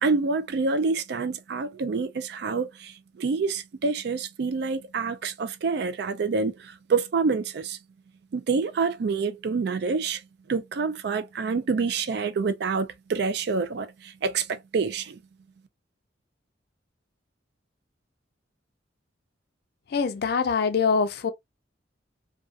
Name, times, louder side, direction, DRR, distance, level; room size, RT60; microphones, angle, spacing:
voice 1, 0.0-7.8 8.3-10.2 10.5-15.2, right 4 dB, 55° right, 0.4 m, -27 dB
voice 2, 19.9-21.3, left 5 dB, 55° left, 0.4 m, -24 dB
2.4 x 2.3 x 2.3 m
head